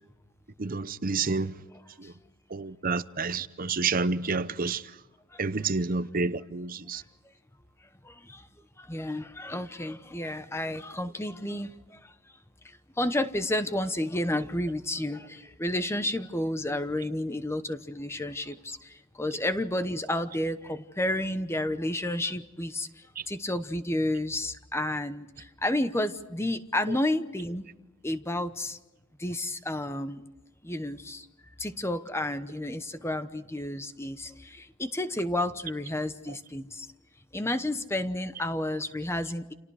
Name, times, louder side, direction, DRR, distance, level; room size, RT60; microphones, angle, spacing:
voice 1, 0.6-1.5 2.5-4.8 5.4-7.0, right 4 dB, 45° right, 0.8 m, -29 dB
voice 2, 1.7-2.1 5.3-5.8 6.9-7.0 8.0-8.5 8.8-12.1 12.6-27.6 28.0-28.8 29.2-30.2 30.6-31.3 31.6-36.9 37.3-39.5, left 1 dB, 10° left, 0.9 m, -31 dB
30.0 x 28.5 x 4.8 m
head